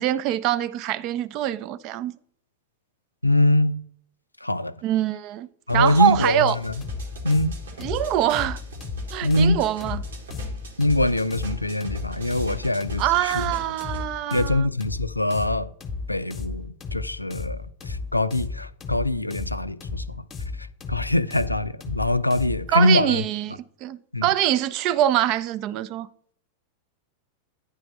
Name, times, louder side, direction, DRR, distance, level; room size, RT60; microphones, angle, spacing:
voice 1, 0.0-2.1 4.8-6.6 7.8-8.6 9.1-10.0 13.0-14.7 22.7-26.1, right 12 dB, 40° right, 0.4 m, -24 dB
voice 2, 3.2-3.8 4.4-4.7 5.7-6.7 7.2-7.6 9.2-9.6 10.8-13.4 14.3-15.7 16.1-20.2 20.6-23.2 24.1-24.3, left 1 dB, 85° left, 0.3 m, -23 dB
sound 1, 5.7-14.0, equal, 70° right, 1.1 m, -41 dB
sound 2, 6.8-22.7, left 4 dB, 20° left, 0.9 m, -34 dB
9.3 x 3.4 x 5.2 m
figure-of-eight pair, 90°, 0 cm